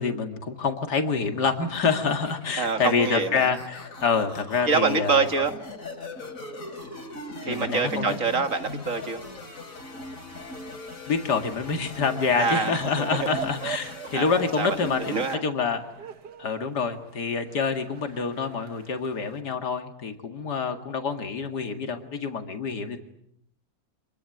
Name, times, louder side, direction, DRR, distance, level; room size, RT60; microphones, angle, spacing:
voice 1, 0.0-5.3 7.4-8.1 11.1-15.1 15.4-15.8 16.4-23.0, left 5 dB, 80° left, 6 dB, 2.7 m, -27 dB
sound 1, 1.7-15.3, left 2 dB, 55° left, 3.8 m, -40 dB
voice 2, 2.6-3.5 4.7-5.5 7.4-9.2 12.3-13.3 14.1-14.8 15.1-15.4, right 4 dB, 50° right, 7 dB, 2.3 m, -26 dB
sound 2, 13.0-19.4, right 9 dB, 85° right, 2.0 m, -42 dB
27.0 x 22.5 x 9.1 m, 0.71 s
omnidirectional pair, 1.7 m